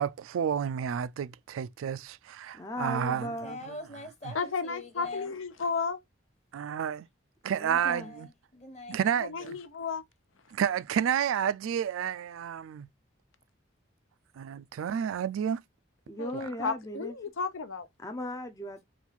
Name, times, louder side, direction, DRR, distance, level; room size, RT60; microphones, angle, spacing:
voice 1, 0.0-3.6 4.2-4.3 6.5-7.1 7.4-8.3 8.9-9.6 10.5-12.9 14.4-15.6 16.3-16.5, right 8 dB, 90° right, 0.3 m, -30 dB
voice 2, 2.5-3.6 7.5-8.1 16.1-17.2 18.0-18.8, left 1 dB, 15° left, 0.4 m, -37 dB
voice 3, 3.1-5.3 7.7-9.0, left 2 dB, 35° left, 1.1 m, -43 dB
voice 4, 4.3-6.0 9.3-10.0 16.2-17.9, left 5 dB, 85° left, 0.7 m, -33 dB
4.3 x 2.4 x 3.9 m
head